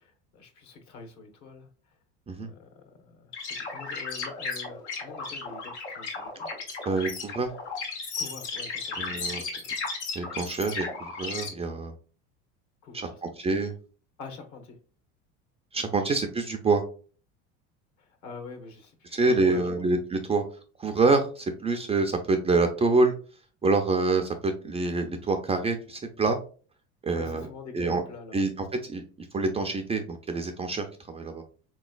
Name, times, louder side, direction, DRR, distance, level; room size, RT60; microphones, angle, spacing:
voice 1, 0.0-2.0 2.4-6.5 8.2-9.7 12.8-13.2 14.2-14.8 18.0-19.7 27.1-28.4, left 4 dB, 55° left, 1.2 m, -45 dB
sound 1, 3.3-11.5, left 4 dB, 85° left, 1.3 m, -35 dB
voice 2, 6.9-7.5 9.0-9.4 10.2-11.9 12.9-13.7 15.7-16.8 19.1-20.4 20.8-23.1 23.6-26.4 27.0-27.5 27.7-28.0 28.3-28.5 28.8-31.4, right 3 dB, 20° right, 0.4 m, -26 dB
3.6 x 3.0 x 2.3 m
supercardioid pair, 105°, 34 cm